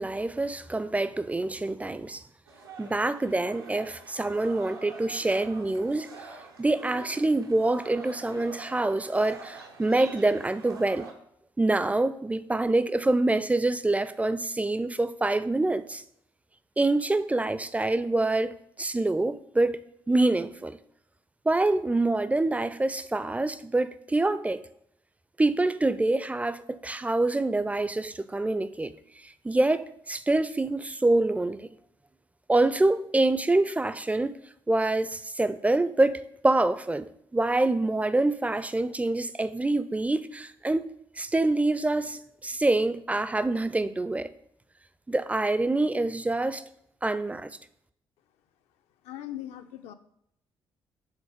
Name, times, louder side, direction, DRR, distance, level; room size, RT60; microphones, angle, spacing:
voice 1, 0.0-2.2 2.8-6.1 6.6-11.1 11.6-16.0 16.8-19.8 20.1-20.8 21.5-24.6 25.4-28.9 29.4-31.7 32.5-34.4 34.7-40.9 41.2-44.3 45.1-46.6 47.0-47.5, right 2 dB, 10° right, 0.4 m, -26 dB
sound 1, 2.5-11.1, right 4 dB, 85° right, 0.7 m, -46 dB
voice 2, 49.0-49.9, left 12 dB, 65° left, 0.5 m, -39 dB
7.2 x 3.9 x 5.0 m
figure-of-eight pair, 40°, 12 cm